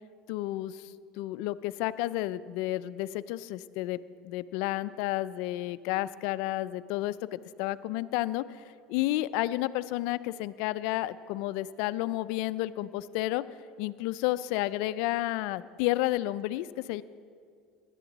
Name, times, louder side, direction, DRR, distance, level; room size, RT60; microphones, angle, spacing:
voice 1, 0.3-4.0 4.2-8.6 8.9-13.4 13.8-17.0, left 16 dB, 70° left, 16 dB, 0.4 m, -31 dB
16.5 x 11.0 x 4.0 m, 2.2 s
supercardioid pair, 105°, 0 cm